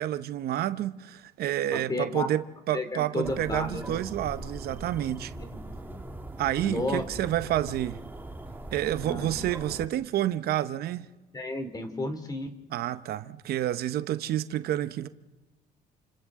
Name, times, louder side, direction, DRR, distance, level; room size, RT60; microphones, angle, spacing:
voice 1, 0.0-5.3 6.4-8.0 8.7-11.1 12.7-15.1, right 12 dB, 65° right, 0.8 m, -29 dB
voice 2, 1.7-2.4 2.7-4.0 5.4-6.0 6.6-7.0 9.0-9.3 11.3-12.5, left 2 dB, 20° left, 2.6 m, -33 dB
sound 1, 3.2-9.9, right 2 dB, 10° right, 1.7 m, -41 dB
29.5 x 28.0 x 3.7 m
cardioid pair, 110°, 17 cm